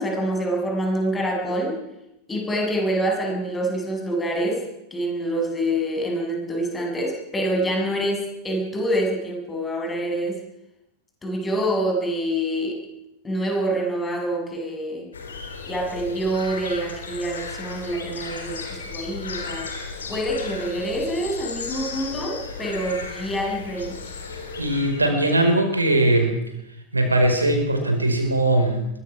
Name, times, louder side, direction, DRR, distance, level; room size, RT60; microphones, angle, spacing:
voice 1, 0.0-1.8 2.3-10.4 11.2-12.8 13.2-15.1 15.7-24.1, right 1 dB, 15° left, 1 dB, 7.0 m, -26 dB
sound 1, 15.1-25.1, left 4 dB, 70° left, 4.1 m, -35 dB
voice 2, 24.6-26.4 26.9-28.9, right 1 dB, 80° right, 5 dB, 4.9 m, -20 dB
23.0 x 20.0 x 6.1 m, 0.87 s
figure-of-eight pair, 90°, 0 cm